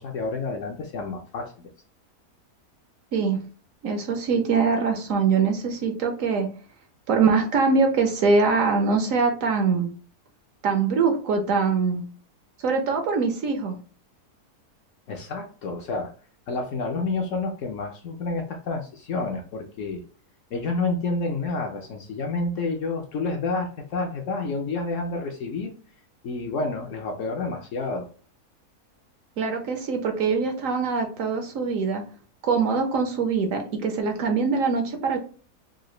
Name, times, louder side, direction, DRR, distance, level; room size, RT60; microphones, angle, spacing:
voice 1, 0.0-1.7 15.1-16.1 16.5-20.0 20.5-25.7 26.2-28.1, left 3 dB, 65° left, 3 dB, 0.8 m, -29 dB
voice 2, 3.8-6.5 7.1-9.9 10.6-12.0 12.6-13.8 29.4-32.0 32.4-35.2, right 5 dB, 65° right, 5 dB, 0.9 m, -23 dB
3.8 x 2.2 x 3.1 m, 0.41 s
omnidirectional pair, 1.7 m